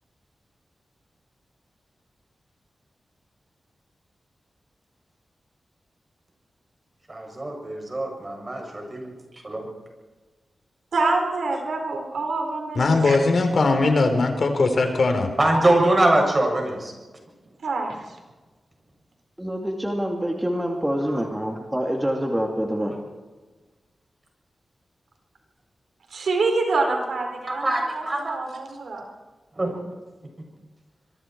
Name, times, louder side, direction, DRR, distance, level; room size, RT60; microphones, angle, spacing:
voice 1, 7.1-9.1 9.4-9.7 15.4-16.9 21.1-21.2 27.5-28.4 29.6-29.8, right 1 dB, 30° right, 1 dB, 7.2 m, -23 dB
voice 2, 10.9-13.2 17.6-18.0 26.1-29.0, right 3 dB, 80° right, 3 dB, 4.7 m, -26 dB
voice 3, 12.8-15.3, left 3 dB, 60° left, 6 dB, 3.7 m, -20 dB
voice 4, 19.4-23.0, equal, 10° right, 1 dB, 2.5 m, -26 dB
26.0 x 23.0 x 4.6 m, 1.3 s
wide cardioid pair, 95°, 0 cm